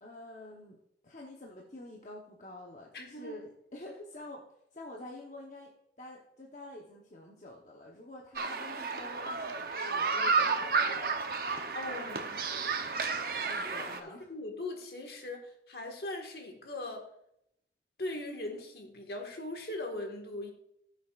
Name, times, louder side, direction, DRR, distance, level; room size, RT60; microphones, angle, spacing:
voice 1, 0.0-0.8 1.0-4.4 4.7-5.7 6.0-11.2 13.4-14.3, left 1 dB, 45° left, -2 dB, 1.0 m, -47 dB
voice 2, 2.9-3.3 11.7-12.5 13.8-13.9 14.3-15.4 15.7-17.0 18.0-20.5, left 2 dB, 60° left, 2 dB, 1.7 m, -39 dB
sound 1, 8.4-14.0, right 4 dB, 55° right, 0.8 m, -32 dB
17.0 x 7.0 x 2.5 m, 0.75 s
head